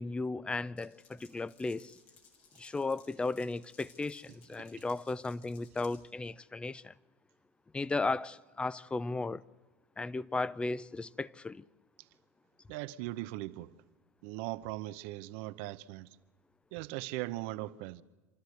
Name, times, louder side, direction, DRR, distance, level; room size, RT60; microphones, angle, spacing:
voice 1, 0.0-2.0 2.6-6.9 7.7-9.4 10.0-11.6, left 3 dB, 15° left, 0.6 m, -35 dB
Glass, 0.8-6.0, left 5 dB, 70° left, 4.6 m, -61 dB
voice 2, 12.7-13.7 14.2-16.1 16.7-18.0, right 17 dB, 65° right, 0.7 m, -39 dB
27.0 x 13.0 x 8.0 m
hypercardioid pair, 85°, 7 cm